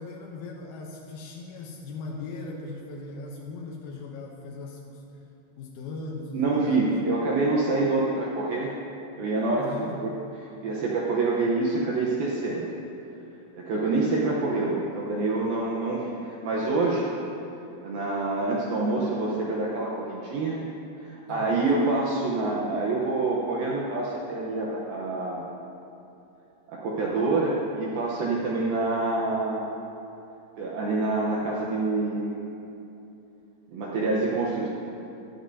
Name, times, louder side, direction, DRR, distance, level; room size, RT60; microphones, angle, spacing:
voice 1, 0.0-5.0 5.6-6.9 9.6-10.0 21.3-21.6 28.4-28.5, left 3 dB, 80° left, -1 dB, 2.2 m, -39 dB
voice 2, 6.3-8.7 9.2-9.7 10.0-10.1 10.6-12.7 13.6-17.1 17.8-20.6 21.0-25.4 26.7-29.7 30.6-32.5 33.7-34.7, right 3 dB, 75° right, -4 dB, 2.2 m, -26 dB
16.5 x 11.5 x 2.7 m, 2.9 s
omnidirectional pair, 5.4 m